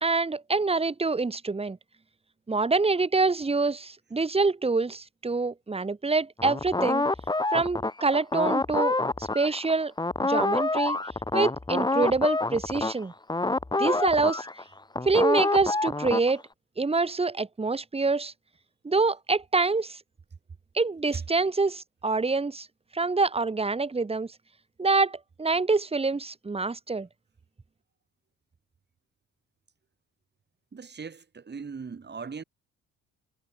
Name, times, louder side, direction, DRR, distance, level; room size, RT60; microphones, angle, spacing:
voice 1, 0.0-1.8 2.5-7.0 7.5-9.9 10.2-11.0 11.3-13.1 13.8-14.5 15.0-16.4 16.8-18.3 18.8-20.0 20.7-22.7 22.9-24.3 24.8-27.1, right 3 dB, 20° right, 1.5 m, -26 dB
sound 1, 6.4-9.7 10.0-16.3, left 2 dB, 15° left, 1.7 m, -27 dB
voice 2, 30.7-32.4, right 5 dB, 35° right, 5.1 m, -38 dB
cardioid pair, 90°, 30 cm